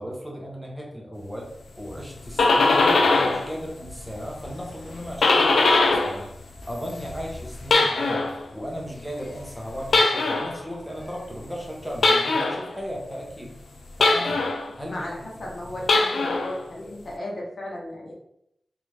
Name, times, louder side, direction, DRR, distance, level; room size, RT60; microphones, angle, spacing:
voice 1, 0.0-1.5 1.8-6.3 6.6-13.5 14.0-14.4 14.8-15.4, equal, ahead, -2 dB, 0.9 m, -36 dB
sound 1, 2.1-3.5 3.8-6.2 6.5-8.4 9.9-10.6 12.0-12.7 14.0-14.7 15.8-16.5, left 3 dB, 90° left, 0.4 m, -21 dB
voice 2, 14.8-18.1, left 1 dB, 65° left, -3 dB, 0.9 m, -35 dB
3.0 x 2.5 x 3.2 m, 0.79 s
wide cardioid pair, 70°, 0 cm